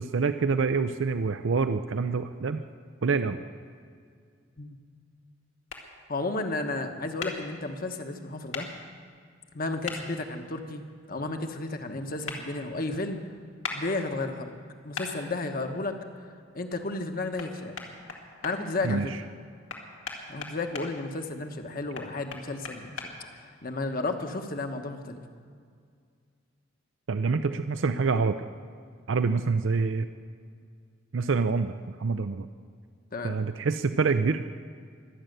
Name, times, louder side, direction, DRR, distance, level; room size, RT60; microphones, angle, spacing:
voice 1, 0.0-2.6 3.0-3.4 18.8-19.2 27.1-28.5 29.1-30.1 31.1-32.5 33.2-34.4, right 4 dB, 80° right, 10 dB, 0.5 m, -26 dB
sound 1, 5.7-5.8 7.2-7.3 8.5-8.7 9.8-10.0 12.3-12.4 13.6-13.8 14.9-15.1 17.4-17.5 17.8-18.5 19.7-20.9 21.9-23.1, left 5 dB, 85° left, 2.3 m, -36 dB
voice 2, 6.1-8.7 9.5-10.8 11.1-13.2 13.7-14.5 14.8-16.0 16.5-17.7 18.4-19.1 20.3-25.2 33.1-33.4, left 2 dB, 50° left, 5 dB, 1.3 m, -33 dB
24.0 x 9.0 x 6.7 m, 2.1 s
head